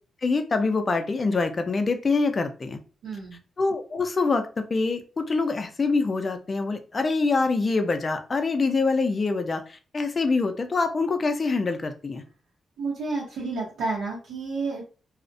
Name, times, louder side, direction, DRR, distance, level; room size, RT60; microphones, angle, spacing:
voice 1, 0.2-2.8 3.6-12.2, left 3 dB, 40° left, 7 dB, 0.5 m, -25 dB
voice 2, 3.0-3.4 12.8-14.8, right 3 dB, 90° right, -4 dB, 0.7 m, -30 dB
2.3 x 2.1 x 2.6 m, 0.35 s
cardioid pair, 80°, 0 cm